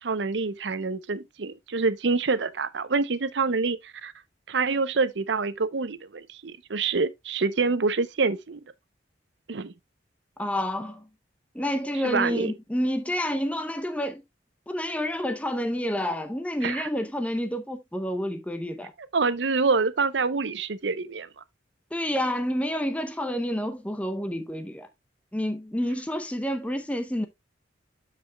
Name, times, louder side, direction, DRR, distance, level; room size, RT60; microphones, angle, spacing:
voice 1, 0.0-4.1 4.5-8.6 9.5-9.7 12.0-12.5 16.6-16.9 19.1-21.4, right 4 dB, 70° right, 0.7 m, -26 dB
voice 2, 10.4-11.1 11.5-14.2 14.7-18.9 21.9-24.9 25.3-27.3, equal, 5° left, 0.6 m, -29 dB
12.0 x 5.0 x 2.2 m
head